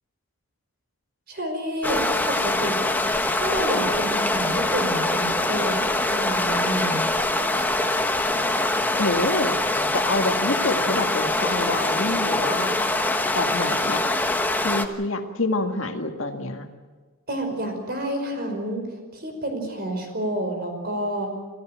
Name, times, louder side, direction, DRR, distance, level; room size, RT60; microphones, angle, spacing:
voice 1, 1.3-3.0 3.3-5.7 6.1-7.1 17.3-18.8 19.1-21.3, right 1 dB, 50° right, 5 dB, 5.1 m, -29 dB
sound 1, 1.8-14.8, left 2 dB, 10° left, 1.2 m, -23 dB
voice 2, 9.0-9.6 9.9-12.9 13.3-14.0 14.6-16.7, left 2 dB, 65° left, 5 dB, 2.0 m, -27 dB
27.0 x 14.0 x 9.1 m, 1.4 s
head